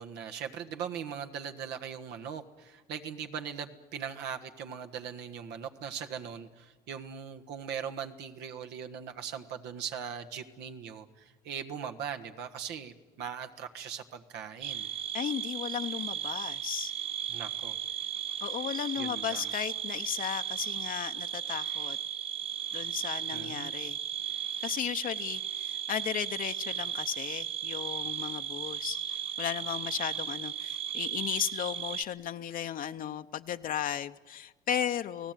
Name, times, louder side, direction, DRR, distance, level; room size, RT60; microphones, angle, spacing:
voice 1, 0.0-14.9 17.3-17.8 19.0-19.5 23.3-23.7, right 7 dB, 85° right, 6 dB, 1.6 m, -40 dB
sound 1, 14.6-32.0, right 10 dB, 35° right, 1.4 m, -36 dB
voice 2, 15.1-16.9 18.4-22.0 22.7-24.0 24.6-35.3, left 10 dB, 55° left, 8 dB, 0.7 m, -35 dB
29.0 x 18.0 x 9.1 m, 1.3 s
cardioid pair, 110°, 17 cm